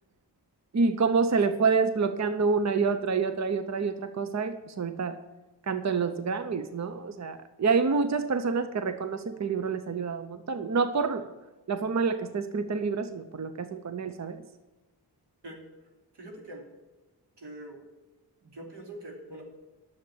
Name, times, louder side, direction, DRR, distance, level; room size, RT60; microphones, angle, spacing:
voice 1, 0.7-5.2 5.7-11.2 11.7-14.4, right 5 dB, 45° right, 10 dB, 0.7 m, -27 dB
voice 2, 16.1-16.7 17.4-17.8 18.4-19.4, right 1 dB, 90° right, 0 dB, 3.1 m, -43 dB
10.5 x 7.4 x 8.7 m, 1.1 s
wide cardioid pair, 115°, 41 cm